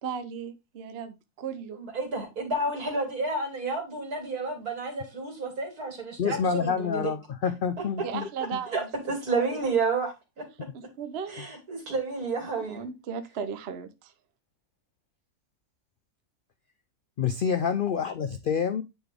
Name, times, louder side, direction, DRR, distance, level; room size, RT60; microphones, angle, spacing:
voice 1, 0.0-1.8 8.0-8.9 9.3-9.7 10.7-11.3 12.6-14.1, right 7 dB, 50° right, 0.9 m, -36 dB
voice 2, 1.8-7.1 8.7-10.1 11.3-12.9, right 3 dB, 75° right, 3.0 m, -30 dB
voice 3, 6.2-8.6 11.4-11.5 17.2-18.8, left 7 dB, 80° left, 0.4 m, -28 dB
9.8 x 4.0 x 3.4 m
omnidirectional pair, 1.6 m